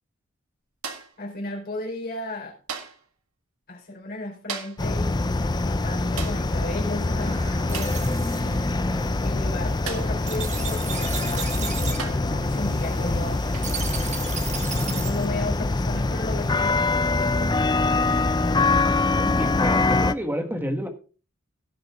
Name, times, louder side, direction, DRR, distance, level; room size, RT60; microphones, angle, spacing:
sound 1, 0.8-1.2 2.7-3.1 4.5-4.9 6.2-6.5 7.7-8.0 9.9-10.2 11.3-11.4 12.0-12.4 13.5-13.8 15.4-15.6, right 6 dB, 85° right, 1.9 m, -36 dB
voice 1, 1.2-2.6 3.7-8.0 9.2-13.4 14.7-17.8, left 2 dB, 45° left, -2 dB, 4.4 m, -34 dB
sound 2, 4.8-20.1, left 3 dB, 20° left, 0.5 m, -24 dB
sound 3, 7.2-15.3, right 6 dB, 35° right, 1.7 m, -36 dB
voice 2, 8.0-9.1 18.9-20.9, equal, 10° right, 5 dB, 1.6 m, -31 dB
17.5 x 6.7 x 3.7 m, 0.36 s
head